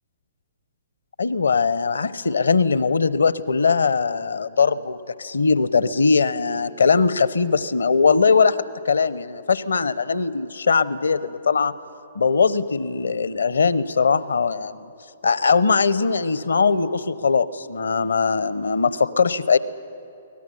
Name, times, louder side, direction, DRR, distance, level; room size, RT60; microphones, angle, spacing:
voice 1, 1.2-8.6 8.8-11.7 12.1-14.9 15.2-19.6, left 5 dB, 75° left, 16 dB, 0.8 m, -20 dB
23.0 x 18.0 x 9.9 m, 2.7 s
figure-of-eight pair, 125°, 0 cm